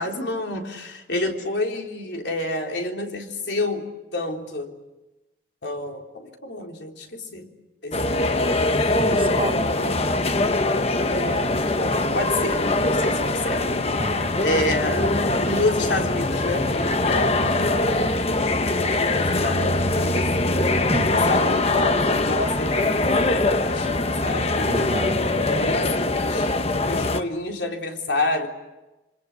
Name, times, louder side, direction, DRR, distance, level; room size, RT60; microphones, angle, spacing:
voice 1, 0.0-4.7 5.6-7.5 7.8-8.7 9.7-10.0 11.1-13.8 14.4-15.1 15.4-20.7 21.1-24.9 25.6-26.5 26.8-28.5, left 2 dB, 80° left, 2 dB, 3.8 m, -29 dB
sound 1, 7.9-27.2, left 2 dB, 35° left, 1.1 m, -22 dB
voice 2, 9.0-9.8 14.0-14.4 20.9-21.3 24.6-25.8, right 1 dB, 30° right, 9 dB, 1.1 m, -30 dB
27.0 x 25.5 x 8.2 m, 1.0 s
head